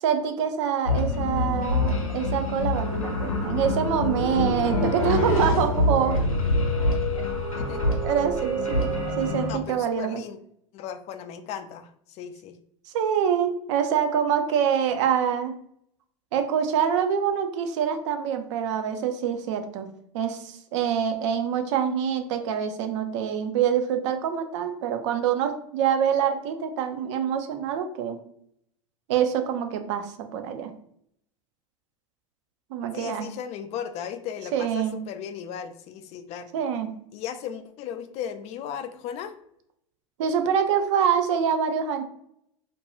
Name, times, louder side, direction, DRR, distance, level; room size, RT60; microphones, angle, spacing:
voice 1, 0.0-6.3 8.0-10.2 12.9-15.5 16.3-19.9 20.1-28.2 29.1-30.7 32.7-33.3 34.5-35.0 36.5-36.9 40.2-42.0, right 8 dB, 60° right, 7 dB, 0.5 m, -25 dB
sound 1, 0.9-9.5, left 2 dB, 90° left, 0.6 m, -25 dB
voice 2, 7.6-8.0 9.5-10.4 10.7-12.6 32.9-36.5 37.1-39.4, left 8 dB, 40° left, 9 dB, 0.4 m, -36 dB
2.6 x 2.2 x 3.0 m, 0.69 s
hypercardioid pair, 85°, 17 cm